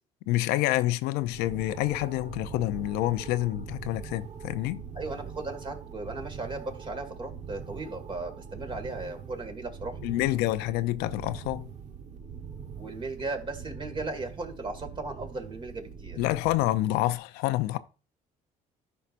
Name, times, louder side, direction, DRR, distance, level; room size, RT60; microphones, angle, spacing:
voice 1, 0.3-4.8 10.0-11.7 16.2-17.8, left 16 dB, 90° left, 0.5 m, -27 dB
sound 1, 1.2-17.2, right 6 dB, 50° right, 1.1 m, -43 dB
voice 2, 4.9-10.0 12.8-16.2, right 3 dB, 30° right, 2.1 m, -36 dB
13.0 x 5.5 x 2.6 m
cardioid pair, 90°, 16 cm